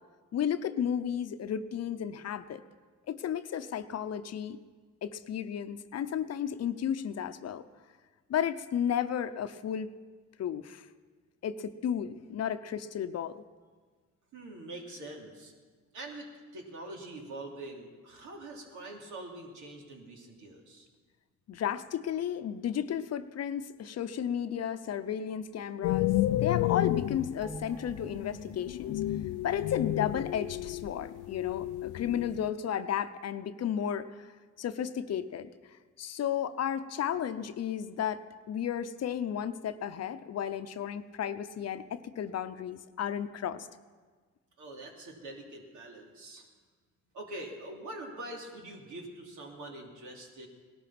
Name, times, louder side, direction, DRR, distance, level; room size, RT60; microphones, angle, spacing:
voice 1, 0.3-2.6 3.1-4.6 5.0-7.6 8.3-9.9 10.4-10.9 11.4-13.4 21.5-29.0 29.4-34.3 34.6-35.5 36.0-38.2 38.5-43.7, left 9 dB, 55° left, 11 dB, 0.8 m, -33 dB
voice 2, 14.3-15.5 15.9-20.9 44.6-46.4 47.1-50.5, right 1 dB, 80° right, 0 dB, 3.0 m, -44 dB
sound 1, 25.8-32.5, left 15 dB, 85° left, 0.5 m, -31 dB
sound 2, 27.4-30.3 30.7-30.8, left 1 dB, 5° right, 1.7 m, -48 dB
18.5 x 12.5 x 6.0 m, 1.5 s
cardioid pair, 90°, 30 cm